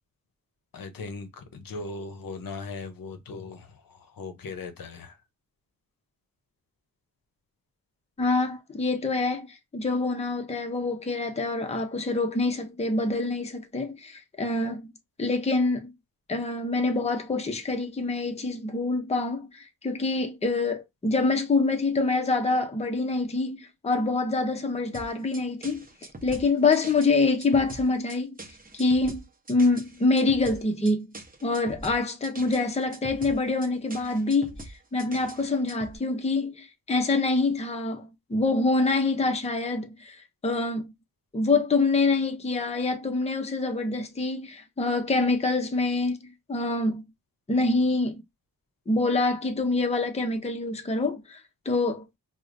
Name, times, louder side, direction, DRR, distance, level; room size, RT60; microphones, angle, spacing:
voice 1, 0.7-5.2, left 3 dB, 65° left, 0.7 m, -39 dB
voice 2, 8.2-14.9 15.2-15.9 16.3-25.8 26.2-28.4 28.7-29.2 29.5-31.1 31.4-34.5 34.9-40.2 40.4-40.9 41.3-47.0 47.5-48.2 48.9-51.4 51.7-52.1, left 3 dB, 20° left, 0.6 m, -26 dB
sound 1, 24.9-36.0, right 2 dB, 25° right, 0.7 m, -43 dB
4.7 x 2.1 x 2.5 m
wide cardioid pair, 115°, 36 cm